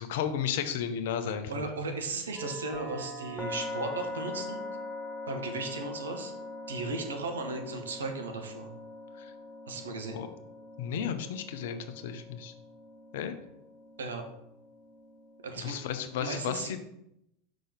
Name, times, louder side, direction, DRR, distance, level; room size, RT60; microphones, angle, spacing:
voice 1, 0.0-1.5 9.2-9.3 10.1-10.3 10.8-12.5 13.1-13.3 15.6-16.8, left 8 dB, 60° left, 9 dB, 0.7 m, -33 dB
voice 2, 1.5-4.6 5.3-6.3 6.7-8.7 9.7-10.2 14.0-14.3 15.4-15.8 16.2-16.7, right 3 dB, 75° right, 5 dB, 1.1 m, -36 dB
sound 1, 2.3-16.2, left 2 dB, 15° left, 0.9 m, -42 dB
5.7 x 3.9 x 5.0 m, 0.80 s
figure-of-eight pair, 85°, 0 cm